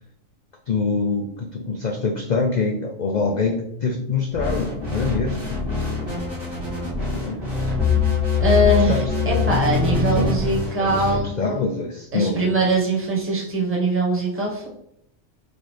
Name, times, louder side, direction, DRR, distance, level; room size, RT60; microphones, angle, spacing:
voice 1, 0.7-5.6 6.8-7.4 8.9-9.0 9.3-9.5 10.2-10.3 10.8-12.5, left 4 dB, 85° left, 3 dB, 0.3 m, -25 dB
sound 1, 4.3-11.2, left 4 dB, 45° right, 1.6 m, -23 dB
voice 2, 8.4-11.4 12.1-14.7, right 1 dB, 10° right, -3 dB, 1.0 m, -22 dB
6.1 x 2.5 x 3.2 m, 0.76 s
omnidirectional pair, 1.3 m